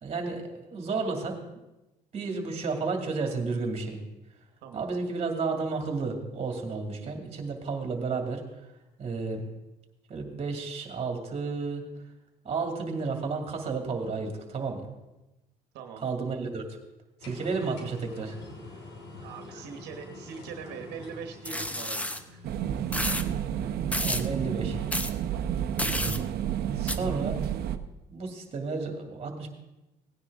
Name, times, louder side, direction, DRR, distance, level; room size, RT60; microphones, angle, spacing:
voice 1, 0.0-1.4 2.1-4.0 4.7-8.4 9.0-9.5 10.1-11.8 12.4-14.9 16.0-16.6 17.2-18.4 23.6-23.7 24.0-24.8 25.8-26.2 26.8-27.6 28.1-29.5, right 4 dB, 35° right, 3 dB, 2.4 m, -32 dB
voice 2, 15.7-16.0 19.2-22.5, right 6 dB, 85° right, 5 dB, 1.2 m, -42 dB
sound 1, 17.2-23.5, left 2 dB, 85° left, 2.7 m, -46 dB
sound 2, 21.4-22.2 22.9-23.2 23.9-24.3 24.9-25.1 25.8-26.2 26.9-27.0, left 1 dB, 10° left, 0.7 m, -30 dB
sound 3, 22.4-27.8, right 10 dB, 70° right, 0.8 m, -30 dB
17.5 x 9.7 x 3.6 m, 0.99 s
cardioid pair, 110°, 17 cm